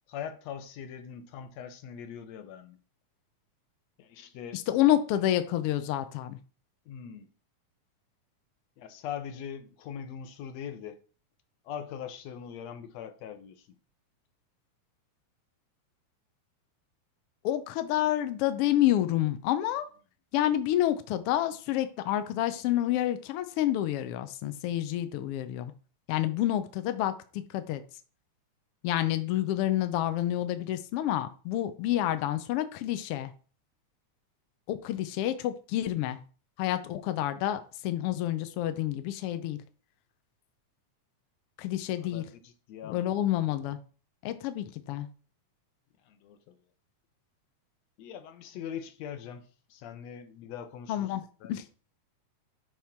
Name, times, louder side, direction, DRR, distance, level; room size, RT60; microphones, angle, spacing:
voice 1, 0.1-2.8 4.0-4.6 6.9-7.3 8.8-11.0 11.6-13.7 42.0-43.2 46.0-46.6 48.0-51.1 51.4-51.5, left 8 dB, 70° left, 1.9 m, -41 dB
voice 2, 4.5-6.4 17.4-19.9 20.3-25.7 26.1-27.8 28.8-33.3 34.7-36.2 36.6-39.6 41.6-42.2 42.8-43.8 44.2-45.1 50.9-51.2 51.5-51.6, left 13 dB, 90° left, 1.2 m, -28 dB
10.0 x 3.7 x 5.9 m
omnidirectional pair, 3.6 m